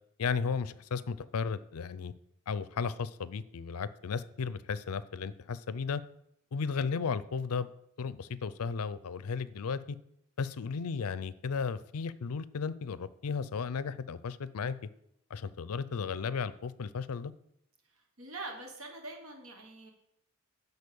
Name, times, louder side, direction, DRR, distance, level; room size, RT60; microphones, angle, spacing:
voice 1, 0.2-2.1 2.5-6.0 6.5-7.7 8.0-10.0 10.4-14.8 15.3-17.3, left 5 dB, 80° left, 16 dB, 0.5 m, -34 dB
voice 2, 17.9-19.9, right 2 dB, 70° right, 3 dB, 1.3 m, -44 dB
9.8 x 4.1 x 6.9 m, 0.77 s
head